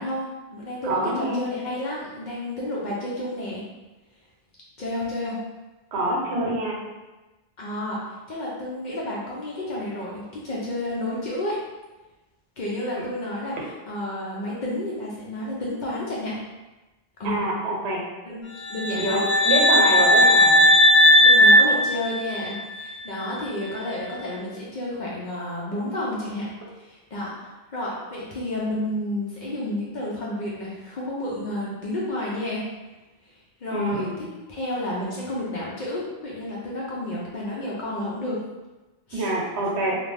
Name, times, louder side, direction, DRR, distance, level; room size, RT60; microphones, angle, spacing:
voice 1, 0.0-3.6 4.8-5.4 7.6-8.0 8.3-11.6 12.6-16.4 17.2-17.4 18.2-19.3 19.7-20.0 21.2-26.5 26.8-32.7 33.2-33.3 33.6-38.4 39.1-39.3, left 1 dB, 55° left, -5 dB, 0.6 m, -31 dB
voice 2, 0.8-1.4 5.9-6.8 13.6-13.7 17.2-18.0 18.9-20.6 33.7-34.2 39.1-40.0, right 2 dB, 80° right, -2 dB, 0.9 m, -26 dB
sound 1, 18.6-22.6, left 1 dB, 80° left, 1.1 m, -16 dB
2.5 x 2.0 x 3.1 m, 1.1 s
omnidirectional pair, 1.1 m